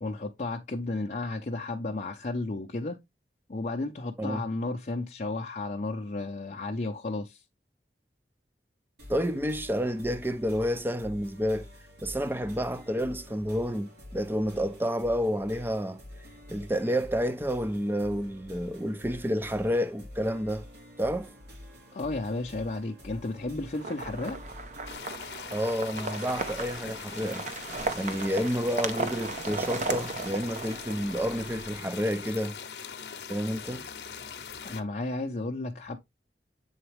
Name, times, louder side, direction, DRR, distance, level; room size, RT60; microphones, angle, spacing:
voice 1, 0.0-3.0 3.5-7.4 21.9-24.4 34.6-36.0, left 2 dB, 40° left, 0.6 m, -33 dB
sound 1, 9.0-25.0, left 1 dB, 75° right, 3.4 m, -47 dB
voice 2, 9.1-11.7 12.0-16.0 16.5-20.6 21.0-21.3 25.5-27.4 27.9-32.6 33.3-33.9, equal, 10° right, 0.5 m, -29 dB
sound 2, 23.7-31.7, right 3 dB, 40° right, 0.7 m, -36 dB
sound 3, 24.9-34.8, left 7 dB, 70° left, 0.8 m, -42 dB
7.9 x 4.0 x 3.2 m
head